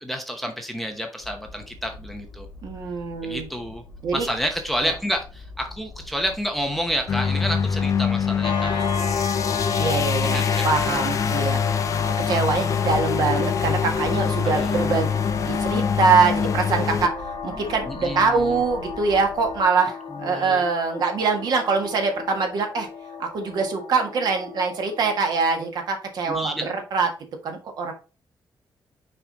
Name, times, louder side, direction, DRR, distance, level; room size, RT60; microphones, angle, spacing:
voice 1, 0.0-2.5 3.2-3.8 4.1-8.9 9.7-11.1 14.4-14.8 17.5-18.6 20.1-20.6 26.3-26.7, equal, ahead, 4 dB, 0.8 m, -30 dB
sound 1, 1.2-19.6, left 2 dB, 20° left, 2.7 m, -43 dB
voice 2, 2.6-3.5 4.0-4.3 4.8-4.9 9.8-15.1 15.4-17.1 17.4-22.9 23.2-27.1 27.4-27.9, right 4 dB, 65° right, 4 dB, 1.7 m, -24 dB
sound 2, 7.1-17.1, left 7 dB, 45° left, 0.5 m, -24 dB
sound 3, 8.4-25.7, left 5 dB, 65° left, 2.3 m, -32 dB
6.0 x 4.9 x 3.9 m, 0.33 s
wide cardioid pair, 170°, 8 cm